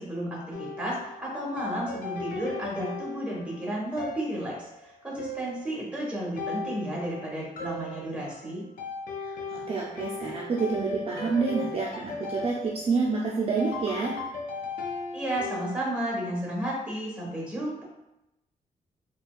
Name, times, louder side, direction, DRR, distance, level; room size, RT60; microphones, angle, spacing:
voice 1, 0.0-8.6 15.1-17.8, right 1 dB, 10° right, -4 dB, 1.2 m, -32 dB
sound 1, 0.5-15.8, left 3 dB, 80° left, 0.5 m, -37 dB
voice 2, 9.2-14.2, right 4 dB, 45° right, -4 dB, 0.5 m, -28 dB
4.2 x 2.3 x 2.4 m, 0.89 s
cardioid pair, 115°, 14 cm